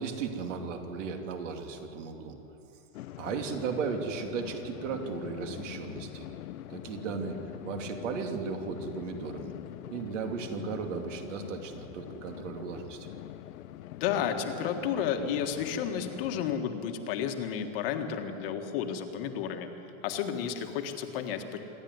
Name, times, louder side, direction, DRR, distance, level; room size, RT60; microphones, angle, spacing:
voice 1, 0.0-2.3 3.2-6.3 6.7-7.4 7.6-9.5 9.9-13.1, right 5 dB, 60° right, 4 dB, 2.7 m, -35 dB
sound 1, 2.9-16.6, left 13 dB, 80° left, 0.8 m, -44 dB
voice 2, 13.9-19.7 20.0-21.6, left 8 dB, 45° left, 5 dB, 1.7 m, -32 dB
26.5 x 12.5 x 9.5 m, 3.0 s
supercardioid pair, 170°, 41 cm